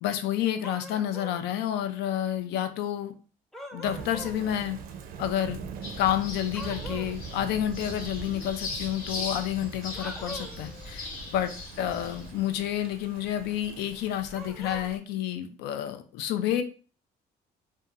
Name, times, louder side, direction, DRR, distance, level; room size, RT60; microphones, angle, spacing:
voice 1, 0.0-3.1 3.7-4.8 5.2-5.6 6.0-11.5 11.8-16.6, left 11 dB, 80° left, 9 dB, 0.4 m, -29 dB
sound 1, 0.6-1.4 3.5-4.4 6.5-7.2 9.9-10.7 14.3-14.9, right 1 dB, ahead, 0.3 m, -42 dB
Thunder / Rain, 3.8-15.0, right 6 dB, 60° right, 0.4 m, -43 dB
sound 2, 5.8-12.3, left 3 dB, 60° left, 0.8 m, -39 dB
2.7 x 2.2 x 2.4 m, 0.38 s
cardioid pair, 110°, 17 cm